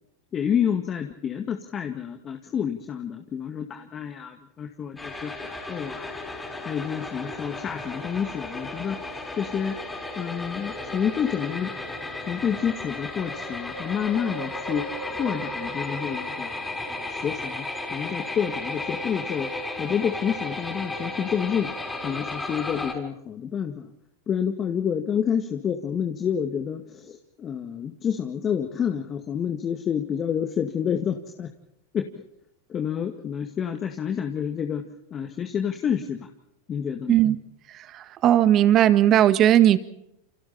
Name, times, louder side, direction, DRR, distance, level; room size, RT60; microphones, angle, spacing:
voice 1, 0.3-6.1 6.7-9.0 9.4-9.7 10.2-11.7 12.3-17.7 17.9-19.5 19.8-21.7 22.0-23.9 24.3-31.5 31.9-32.2 32.7-34.8 35.1-36.3 36.7-37.2, left 8 dB, 30° left, 5 dB, 2.1 m, -29 dB
sound 1, 5.0-22.9, left 2 dB, 10° left, 6.2 m, -34 dB
voice 2, 37.9-39.8, right 11 dB, 40° right, 13 dB, 1.7 m, -17 dB
29.0 x 26.5 x 4.3 m, 0.83 s
hypercardioid pair, 110°, 0 cm